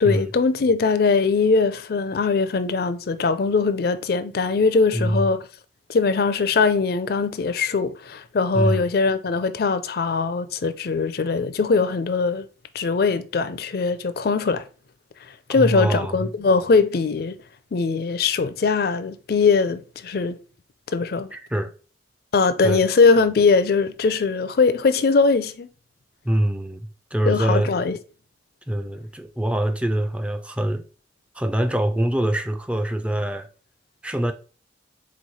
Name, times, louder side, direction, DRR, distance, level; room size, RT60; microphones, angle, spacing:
voice 1, 0.0-5.5 5.9-12.5 12.7-14.7 15.5-17.4 17.7-20.4 20.9-21.3 22.3-25.7 27.3-28.0, left 4 dB, 55° left, 0.4 m, -21 dB
voice 2, 4.9-5.3 8.5-8.9 15.5-16.3 21.3-21.7 22.6-22.8 26.2-27.7 28.7-30.8 31.3-33.5 34.0-34.3, right 1 dB, 5° right, 0.3 m, -24 dB
4.1 x 3.1 x 4.1 m
head